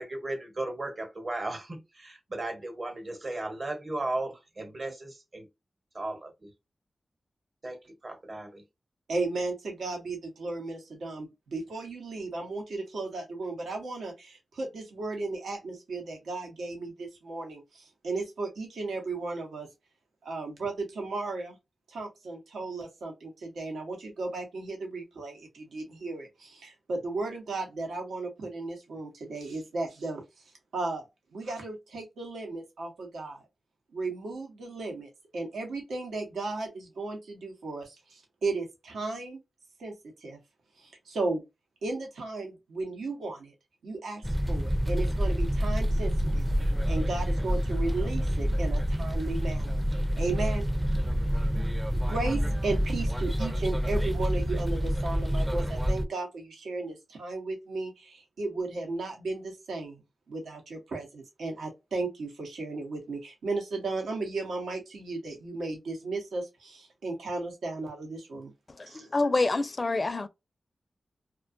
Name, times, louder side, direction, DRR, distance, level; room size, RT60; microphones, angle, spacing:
voice 1, 0.0-5.5 5.9-6.5 7.6-8.6, right 2 dB, 50° right, 1.0 m, -36 dB
voice 2, 9.1-19.7 20.2-21.6 21.9-31.0 31.3-33.4 33.9-39.4 39.8-40.4 40.8-41.4 41.8-43.5 43.8-50.6 51.0-51.1 51.9-60.0 60.3-68.5 68.9-69.1, right 3 dB, 90° right, 0.8 m, -35 dB
sound 1, 44.2-56.1, equal, 15° right, 0.4 m, -27 dB
voice 3, 68.9-70.3, left 3 dB, 45° left, 0.4 m, -26 dB
2.4 x 2.3 x 2.5 m
cardioid pair, 40°, 0 cm